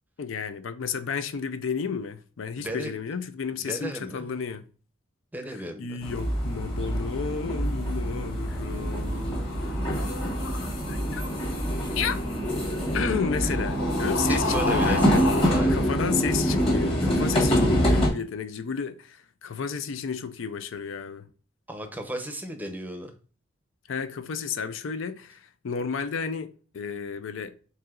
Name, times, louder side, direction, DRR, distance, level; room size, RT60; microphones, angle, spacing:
voice 1, 0.2-4.6 5.5-11.3 12.0-12.2 12.9-15.2 15.7-21.3 23.9-27.6, left 6 dB, 70° left, 0.4 m, -32 dB
voice 2, 2.6-2.9 3.7-4.4 5.3-6.0 13.4-13.6 14.3-15.9 21.7-23.1, right 1 dB, 10° right, 0.7 m, -35 dB
sound 1, 6.0-18.1, equal, 30° left, 1.4 m, -25 dB
sound 2, 9.0-15.7, left 3 dB, 85° left, 0.9 m, -33 dB
4.7 x 3.8 x 2.4 m
head